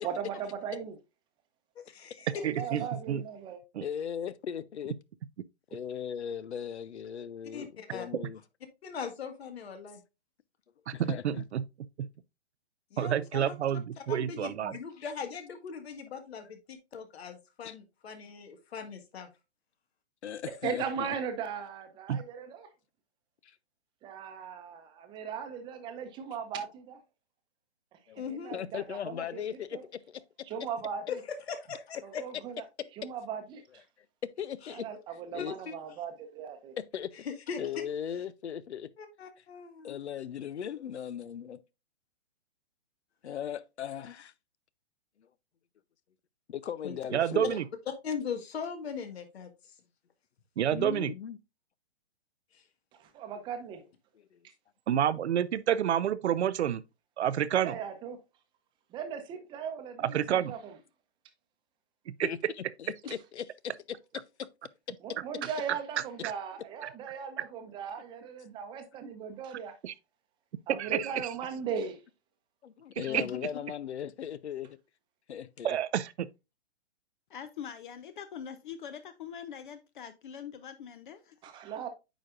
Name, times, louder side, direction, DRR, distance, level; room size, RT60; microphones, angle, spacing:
voice 1, 0.0-0.9 2.3-3.6 20.6-22.7 24.0-27.0 28.3-29.4 29.7-29.8 30.5-31.0 32.0-32.6 33.0-33.8 34.7-36.7 53.0-53.8 57.6-58.2 58.9-60.2 60.5-60.7 65.0-69.7 70.7-72.0 81.4-81.9, right 7 dB, 15° right, 0.8 m, -38 dB
voice 2, 1.7-2.4 7.5-8.1 8.8-10.0 12.9-13.5 14.0-19.3 28.1-28.6 31.1-32.2 35.4-35.7 37.2-37.8 39.0-40.0 46.8-46.9 47.5-47.6 48.0-49.5 52.5-52.6 73.1-73.3, left 6 dB, 65° left, 1.8 m, -40 dB
voice 3, 2.4-3.2 3.7-3.8 11.0-11.6 12.0-12.1 13.0-14.8 22.1-22.2 47.1-47.6 50.6-51.1 54.9-56.8 57.2-57.8 60.0-60.5 62.1-62.3 66.2-66.3 69.8-69.9 70.8-71.1 73.0-73.2 75.6-76.3, right 10 dB, 80° right, 0.6 m, -29 dB
voice 4, 3.8-4.9 5.7-8.4 10.9-11.4 15.0-15.1 17.6-17.7 20.2-21.2 23.4-23.6 28.1-28.2 28.5-29.8 30.1-30.2 34.4-34.9 35.3-35.6 36.8-37.1 37.6-38.9 39.8-41.6 43.2-44.3 46.5-47.5 50.7-51.4 54.3-54.4 62.2-62.4 62.8-63.4 63.9-64.0 72.6-74.8 75.3-75.8, left 9 dB, 90° left, 0.7 m, -38 dB
voice 5, 77.3-81.4, left 8 dB, 50° left, 0.7 m, -43 dB
8.9 x 5.1 x 2.5 m
hypercardioid pair, 150°, 33 cm